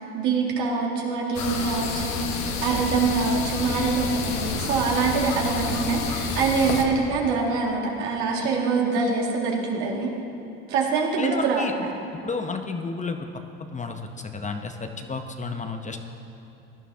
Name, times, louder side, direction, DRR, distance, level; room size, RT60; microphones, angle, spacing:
voice 1, 0.0-10.1 10.7-11.9, right 4 dB, 70° right, -2 dB, 2.2 m, -24 dB
sound 1, 1.3-6.8, left 4 dB, 60° left, 1.3 m, -29 dB
voice 2, 11.2-11.7 12.2-13.3 13.7-16.0, left 4 dB, 25° left, 5 dB, 0.8 m, -31 dB
17.0 x 11.0 x 2.8 m, 2.7 s
hypercardioid pair, 75°, 32 cm